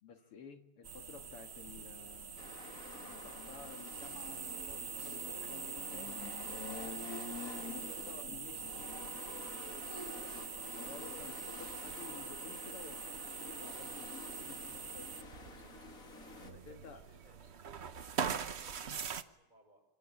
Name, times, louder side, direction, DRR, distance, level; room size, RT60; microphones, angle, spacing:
voice 1, 0.0-2.4 3.1-6.9 7.6-9.4 10.7-15.3 16.4-17.0, left 7 dB, 85° left, 6 dB, 2.7 m, -54 dB
sound 1, 0.8-19.2, right 7 dB, 50° right, 0.8 m, -43 dB
sound 2, 2.4-16.5, left 4 dB, 40° left, 2.5 m, -48 dB
voice 2, 16.4-19.8, equal, 20° right, 4 dB, 6.5 m, -66 dB
25.5 x 24.5 x 7.2 m, 0.94 s
omnidirectional pair, 2.4 m